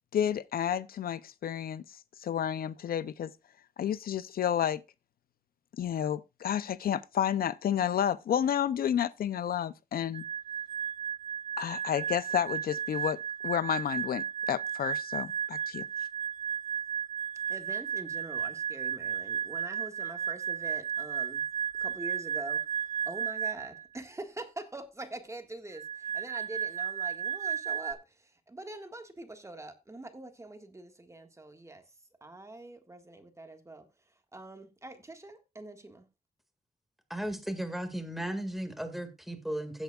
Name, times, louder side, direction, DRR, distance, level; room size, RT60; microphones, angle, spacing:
voice 1, 0.1-1.8 2.2-3.3 3.8-4.8 5.8-10.2 11.6-13.2 13.4-15.9, left 9 dB, 70° left, 0.5 m, -30 dB
sound 1, 10.1-23.8 25.7-27.9, right 8 dB, 45° right, 1.2 m, -34 dB
voice 2, 17.5-21.5 21.8-31.8 32.2-33.9 34.3-36.1, right 2 dB, 20° right, 1.6 m, -44 dB
voice 3, 37.1-39.8, right 1 dB, ahead, 1.9 m, -35 dB
16.5 x 8.0 x 2.3 m
wide cardioid pair, 120°, 16 cm